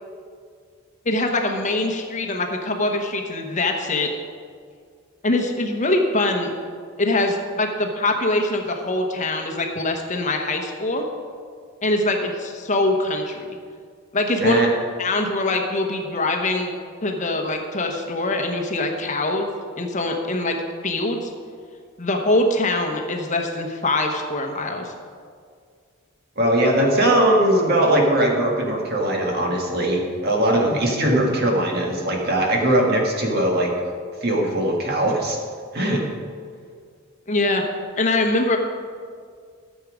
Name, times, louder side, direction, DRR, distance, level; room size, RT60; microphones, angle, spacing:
voice 1, 1.0-4.1 5.2-6.5 7.0-11.0 11.8-13.5 14.1-14.6 15.0-16.7 17.0-19.5 19.8-20.6 20.8-21.3 22.0-24.9 37.3-37.6 38.0-38.6, left 2 dB, 35° left, 3 dB, 1.0 m, -23 dB
voice 2, 26.4-33.7 34.2-35.4 35.7-36.1, right 1 dB, 50° right, 0 dB, 1.8 m, -20 dB
13.5 x 7.3 x 5.0 m, 2.1 s
head